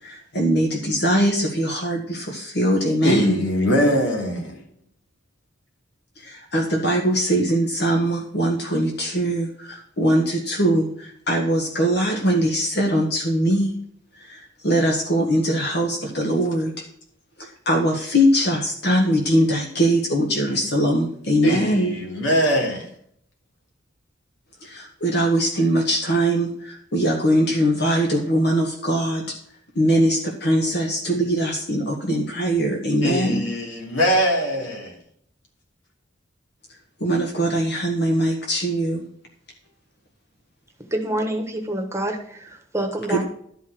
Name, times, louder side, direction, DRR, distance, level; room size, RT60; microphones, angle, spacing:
voice 1, 0.0-3.4 6.2-13.7 14.2-16.8 17.4-22.0 24.6-29.2 29.7-33.4 37.0-39.0 43.1-43.2, right 1 dB, 55° left, 1 dB, 1.6 m, -21 dB
voice 2, 3.0-4.6 20.5-20.6 21.4-22.9 33.0-35.0, equal, 75° left, 0 dB, 3.1 m, -22 dB
voice 3, 40.9-43.2, right 1 dB, 15° right, 4 dB, 1.3 m, -27 dB
11.5 x 5.6 x 6.2 m, 0.66 s
head